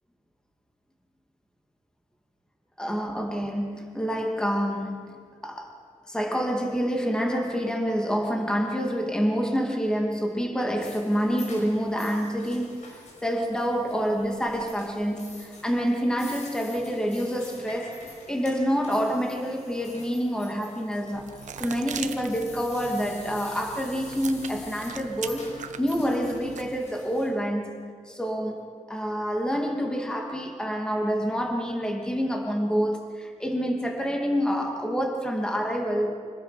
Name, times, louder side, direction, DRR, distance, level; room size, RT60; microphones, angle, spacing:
voice 1, 2.8-5.7 6.1-36.2, equal, 5° left, 1 dB, 2.3 m, -27 dB
sound 1, 10.8-27.3, left 2 dB, 70° left, 6.1 m, -47 dB
sound 2, 21.1-26.8, right 8 dB, 85° right, 1.0 m, -41 dB
25.5 x 20.0 x 5.8 m, 2.1 s
wide cardioid pair, 155°, 12 cm